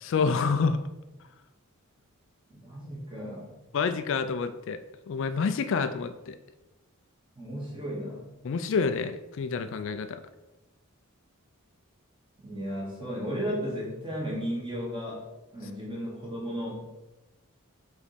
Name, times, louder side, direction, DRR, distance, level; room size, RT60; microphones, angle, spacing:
voice 1, 0.0-0.8 3.7-4.8 5.1-6.4 8.4-10.2, left 5 dB, 60° left, 10 dB, 0.4 m, -28 dB
voice 2, 2.5-3.5 7.4-8.2 12.4-15.2 15.5-16.8, equal, 25° right, -4 dB, 1.9 m, -34 dB
5.2 x 4.1 x 4.9 m, 1.0 s
head